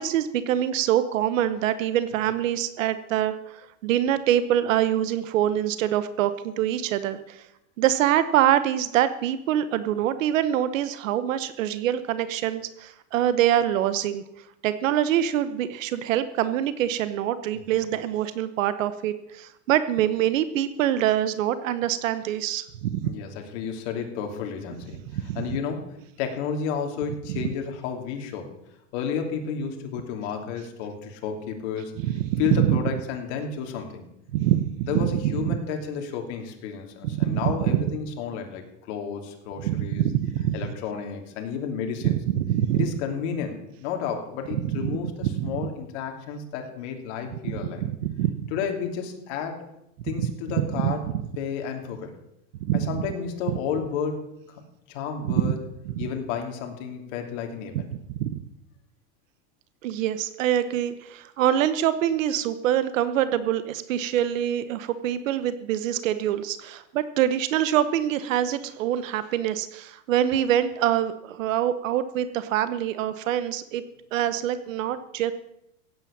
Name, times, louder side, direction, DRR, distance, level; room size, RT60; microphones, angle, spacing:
voice 1, 0.0-7.5 7.8-14.2 14.6-23.1 25.1-25.4 27.3-27.5 32.0-32.8 34.3-35.6 37.0-37.8 39.6-40.5 42.0-42.8 44.6-45.5 48.0-48.5 50.8-50.9 52.6-53.0 55.3-55.5 57.7-57.8 58.2-58.4 59.8-73.8 74.1-75.3, right 11 dB, 85° right, 12 dB, 1.0 m, -25 dB
voice 2, 17.5-17.9 23.0-28.5 28.9-31.9 32.4-34.1 34.9-40.1 40.5-42.2 42.7-47.8 48.5-49.6 50.0-51.0 51.3-52.1 52.7-54.2 54.5-54.6 54.9-55.6 56.0-57.9, left 7 dB, 60° left, 4 dB, 3.0 m, -32 dB
16.0 x 9.0 x 7.3 m, 0.83 s
supercardioid pair, 145°, 38 cm